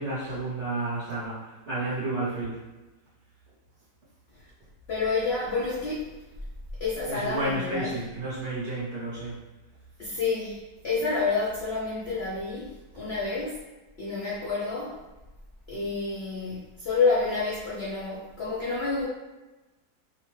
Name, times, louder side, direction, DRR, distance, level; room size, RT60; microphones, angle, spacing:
voice 1, 0.0-2.6 7.1-9.4, right 2 dB, 50° right, -8 dB, 0.9 m, -31 dB
voice 2, 4.9-6.0 6.8-7.9 10.0-10.6 10.8-12.7 13.0-13.6 14.0-15.0 15.7-19.0, left 4 dB, 70° left, -7 dB, 0.5 m, -28 dB
2.8 x 2.1 x 3.1 m, 1.1 s
omnidirectional pair, 1.9 m